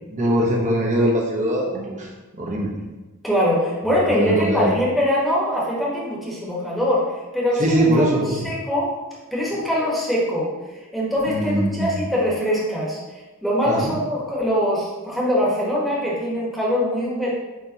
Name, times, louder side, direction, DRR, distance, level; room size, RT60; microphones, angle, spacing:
voice 1, 0.1-2.1 2.4-2.7 4.1-4.7 7.6-8.5 11.3-12.0 13.7-13.9, right 1 dB, 35° right, -1 dB, 1.1 m, -21 dB
voice 2, 3.2-8.9 9.3-10.5 10.9-13.0 13.4-17.3, equal, ahead, -6 dB, 1.3 m, -23 dB
9.5 x 3.4 x 2.9 m, 1.2 s
head